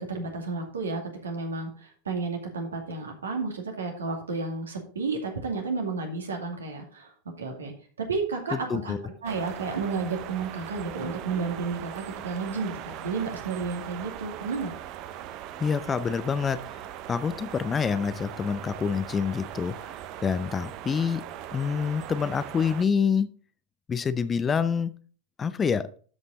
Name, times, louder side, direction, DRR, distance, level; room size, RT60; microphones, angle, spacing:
voice 1, 0.0-7.1 7.4-7.7 8.1-8.9 9.2-14.7, right 4 dB, 75° right, 3 dB, 2.2 m, -32 dB
voice 2, 8.5-9.0 15.6-16.6 17.1-19.9 20.2-21.2 21.5-23.3 23.9-25.0 25.4-25.9, left 6 dB, 25° left, 14 dB, 0.6 m, -27 dB
sound 1, 9.2-22.8, right 11 dB, 45° right, 0.8 m, -40 dB
12.5 x 5.4 x 4.0 m, 0.43 s
figure-of-eight pair, 85°, 0 cm